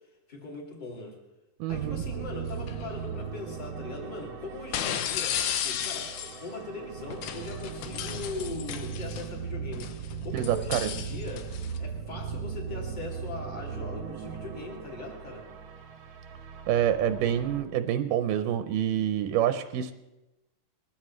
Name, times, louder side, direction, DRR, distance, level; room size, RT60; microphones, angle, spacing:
voice 1, 0.3-1.2 1.7-15.5, left 2 dB, 15° left, -1 dB, 2.1 m, -40 dB
voice 2, 1.6-2.0 10.3-10.9 16.7-19.9, right 10 dB, 85° right, 9 dB, 2.4 m, -27 dB
sound 1, 1.7-17.6, right 6 dB, 55° right, 1.5 m, -38 dB
sound 2, 2.6-2.8 4.7-6.5 7.1-9.3 9.7-11.8, left 10 dB, 80° left, 2.3 m, -34 dB
20.5 x 14.5 x 3.2 m, 0.98 s
omnidirectional pair, 3.7 m